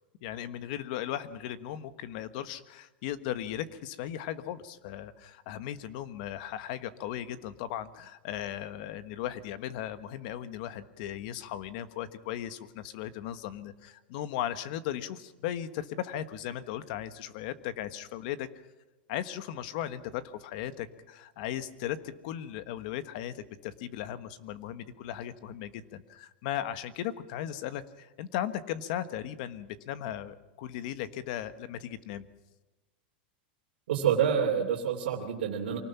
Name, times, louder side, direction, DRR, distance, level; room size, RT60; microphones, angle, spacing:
voice 1, 0.2-18.5 19.1-22.0 22.2-32.3, left 11 dB, 50° left, 13 dB, 1.3 m, -37 dB
voice 2, 33.9-35.8, right 8 dB, 90° right, -2 dB, 2.9 m, -27 dB
25.0 x 18.5 x 5.9 m, 1.1 s
supercardioid pair, 165°, 5 cm